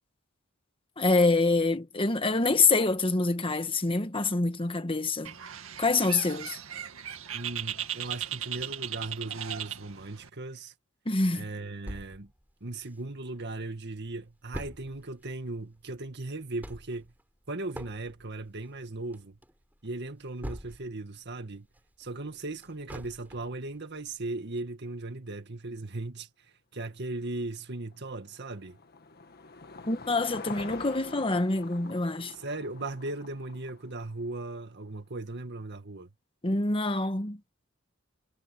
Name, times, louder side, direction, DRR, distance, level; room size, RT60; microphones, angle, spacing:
voice 1, 1.0-5.3 5.8-6.6 11.0-11.5 29.9-32.3 36.4-37.4, left 3 dB, 25° left, 1.5 m, -26 dB
Bird, 5.2-10.3, right 10 dB, 80° right, 2.1 m, -37 dB
voice 2, 7.3-10.7 11.3-12.3 12.6-17.1 17.5-19.4 19.8-21.7 22.0-26.3 26.7-28.8 32.3-36.1, right 2 dB, 55° right, 2.0 m, -37 dB
sound 1, 11.9-13.4 13.8-13.9 14.1-21.1 21.5-23.6 24.1-24.2 24.6-24.7, equal, 10° right, 5.0 m, -44 dB
Car passing by / Engine, 27.9-34.3, left 4 dB, 50° left, 1.7 m, -45 dB
head